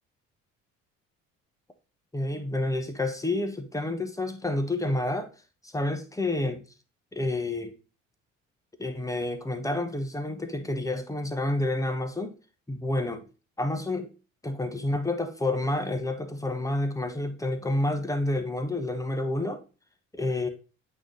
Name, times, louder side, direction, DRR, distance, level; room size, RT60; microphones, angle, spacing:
voice 1, 2.1-5.3 5.6-6.6 7.1-7.7 8.8-12.3 12.7-13.2 13.6-14.1 14.4-19.6 20.1-20.5, left 2 dB, 10° left, 1.2 m, -29 dB
8.8 x 3.2 x 3.9 m
hypercardioid pair, 50°, 38 cm